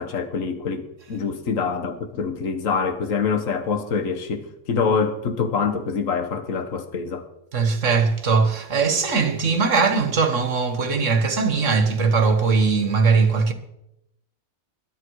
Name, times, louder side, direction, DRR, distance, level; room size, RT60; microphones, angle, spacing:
voice 1, 0.0-7.2, left 5 dB, 70° left, 1.8 m, -25 dB
voice 2, 7.5-13.5, right 4 dB, 60° right, 1.9 m, -20 dB
21.5 x 11.5 x 4.8 m
omnidirectional pair, 1.4 m